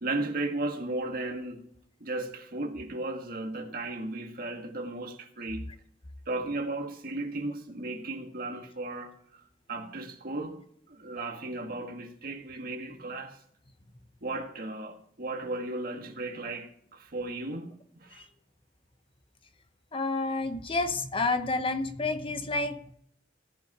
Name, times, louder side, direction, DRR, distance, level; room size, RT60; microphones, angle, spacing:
voice 1, 0.0-1.7 2.0-5.7 6.3-9.4 9.7-10.6 10.9-13.4 14.2-18.2, right 2 dB, 55° right, 1.7 m, -35 dB
voice 2, 19.9-22.9, left 3 dB, 30° left, 0.8 m, -30 dB
17.0 x 5.8 x 4.8 m
head